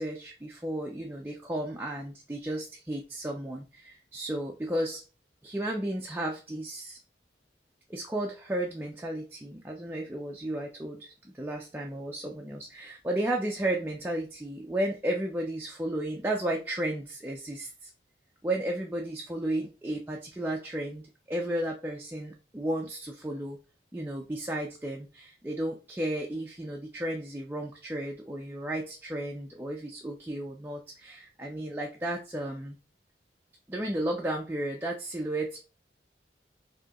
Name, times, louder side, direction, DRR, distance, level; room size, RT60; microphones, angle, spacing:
voice 1, 0.0-5.0 5.4-7.0 7.9-17.9 18.4-23.6 23.9-32.7 33.7-35.6, right 1 dB, 10° right, 0 dB, 0.4 m, -33 dB
4.5 x 2.7 x 2.9 m, 0.33 s
head